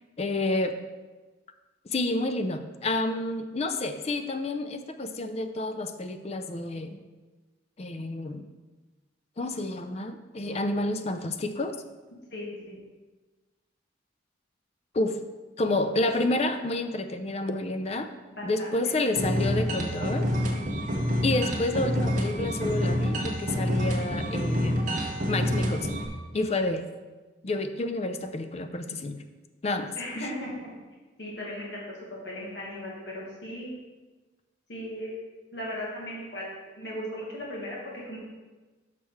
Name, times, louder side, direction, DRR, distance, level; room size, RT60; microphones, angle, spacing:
voice 1, 0.2-0.8 1.9-7.0 7.8-8.4 9.4-11.8 14.9-15.2 15.6-18.1 18.4-20.3 21.2-24.9 25.3-26.0 26.3-26.9 27.4-29.2 29.6-30.3, left 2 dB, 35° left, 8 dB, 0.4 m, -29 dB
voice 2, 12.3-12.7 18.3-18.9 30.0-30.7 31.2-31.8 32.2-33.7 34.7-35.1 35.5-38.2, equal, 65° left, -4 dB, 1.6 m, -37 dB
sound 1, 19.2-26.1, equal, 40° right, 1.1 m, -27 dB
6.4 x 5.7 x 4.6 m, 1.3 s
head